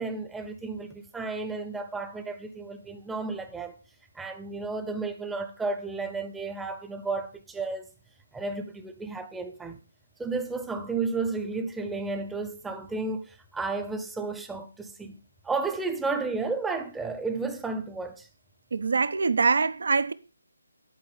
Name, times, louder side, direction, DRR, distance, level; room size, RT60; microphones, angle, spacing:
voice 1, 0.0-3.7 4.1-7.9 8.3-9.8 10.2-15.1 15.4-18.3, right 3 dB, 5° right, 0.8 m, -32 dB
voice 2, 18.7-20.1, right 4 dB, 65° right, 0.7 m, -24 dB
11.5 x 4.6 x 6.7 m
figure-of-eight pair, 155°, 0 cm